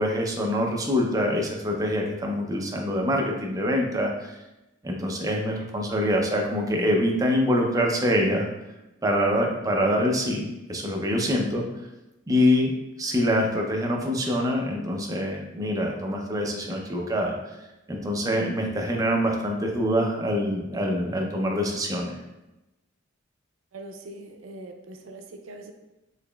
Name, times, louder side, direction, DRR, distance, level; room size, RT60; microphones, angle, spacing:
voice 1, 0.0-4.3 4.8-8.5 9.0-11.7 12.3-12.7 13.0-17.4 17.9-22.2, equal, 15° right, 0 dB, 0.4 m, -25 dB
voice 2, 23.7-25.7, right 2 dB, 80° right, 5 dB, 0.4 m, -42 dB
3.9 x 2.9 x 2.2 m, 0.97 s
head